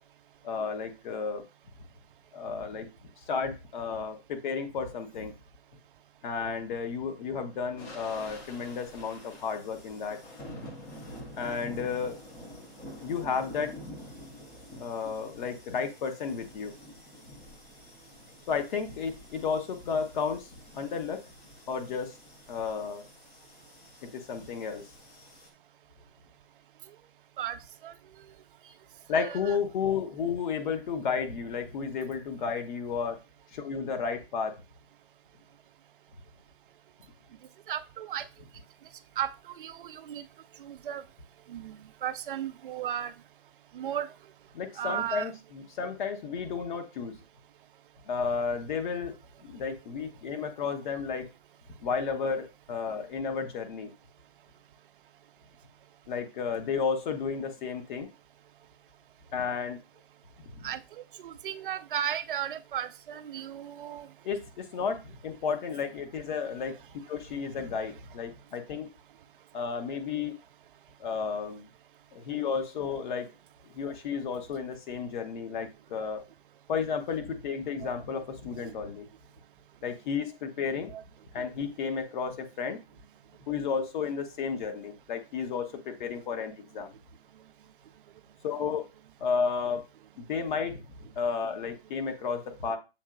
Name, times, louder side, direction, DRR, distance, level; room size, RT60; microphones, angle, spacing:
voice 1, 0.4-1.4 2.3-2.9 3.3-5.3 6.2-10.2 11.4-12.2 13.0-13.8 14.8-16.7 18.5-21.2 21.7-22.1 22.5-23.1 24.1-24.8 29.1-33.2 33.5-34.6 44.5-47.2 48.0-49.1 49.4-51.3 51.8-53.9 56.1-58.1 59.3-59.8 60.5-60.7 64.2-66.7 67.1-68.9 69.5-70.4 71.0-71.7 72.1-73.3 73.6-76.2 76.7-79.1 79.8-80.9 81.3-82.8 83.5-86.9 88.4-88.9 89.2-89.8 90.2-90.8 91.2-92.8, left 6 dB, 50° left, 6 dB, 1.0 m, -32 dB
sound 1, 7.8-25.5, left 1 dB, 10° left, 0.4 m, -48 dB
voice 2, 29.2-29.6 37.7-38.2 39.2-40.2 40.6-41.0 41.5-43.1 43.7-44.1 44.8-45.3 60.6-64.1 77.8-77.9 78.6-78.7 80.9-81.0, right 10 dB, 55° right, 12 dB, 0.4 m, -35 dB
7.1 x 2.9 x 2.5 m, 0.28 s
hypercardioid pair, 130°, 31 cm